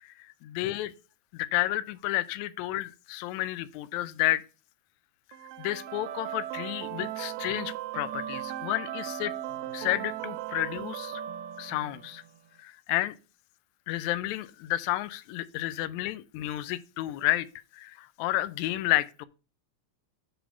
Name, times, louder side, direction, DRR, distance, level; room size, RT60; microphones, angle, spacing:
voice 1, 0.0-0.9 1.3-4.4 5.6-9.3 9.7-11.2 11.6-12.2 12.6-13.2 13.9-17.5 17.7-19.3, left 16 dB, 85° left, 1.9 m, -31 dB
sound 1, 5.3-12.3, right 12 dB, 75° right, 1.8 m, -37 dB
7.9 x 4.1 x 5.7 m
omnidirectional pair, 3.3 m